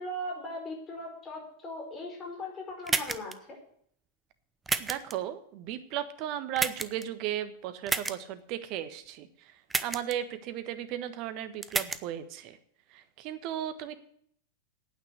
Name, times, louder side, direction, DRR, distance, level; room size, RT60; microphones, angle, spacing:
voice 1, 0.0-3.6, left 1 dB, 25° left, 2 dB, 4.7 m, -39 dB
sound 1, 2.9-3.3 4.7-5.1 6.6-7.0 7.9-8.2 9.7-10.1 11.6-12.0, right 4 dB, 15° right, 0.7 m, -30 dB
voice 2, 4.8-9.3 9.8-12.6 12.9-14.0, right 11 dB, 40° right, 11 dB, 1.3 m, -35 dB
9.2 x 9.0 x 8.1 m, 0.65 s
figure-of-eight pair, 90°, 0 cm